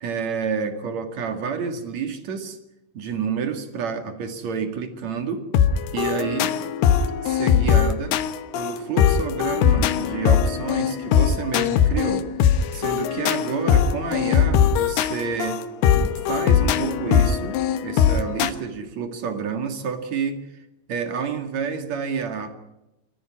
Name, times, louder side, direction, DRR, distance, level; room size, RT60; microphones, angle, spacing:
voice 1, 0.0-2.6 2.9-5.5 5.9-6.5 7.2-8.2 8.5-12.3 12.7-15.6 15.9-22.6, right 6 dB, 50° right, 6 dB, 2.3 m, -29 dB
sound 1, 5.5-18.5, left 8 dB, 75° left, 2.6 m, -20 dB
25.0 x 14.0 x 9.8 m, 0.93 s
omnidirectional pair, 5.6 m